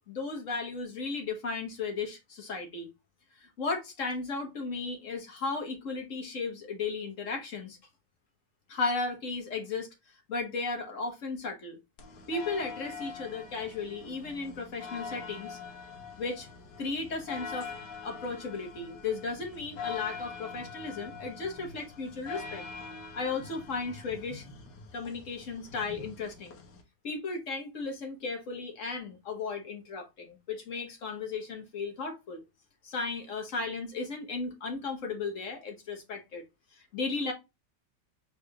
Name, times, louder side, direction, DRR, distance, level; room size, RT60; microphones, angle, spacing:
voice 1, 0.0-2.9 3.4-7.8 8.7-9.9 10.3-11.8 12.3-15.6 16.2-16.5 16.8-17.7 18.0-22.6 23.1-24.4 24.9-26.6 27.0-32.4 32.8-36.4 36.7-37.3, left 4 dB, 50° left, 1.6 m, -35 dB
sound 1, 12.0-26.8, left 5 dB, 70° left, 1.6 m, -44 dB
4.7 x 4.1 x 2.4 m
omnidirectional pair, 1.9 m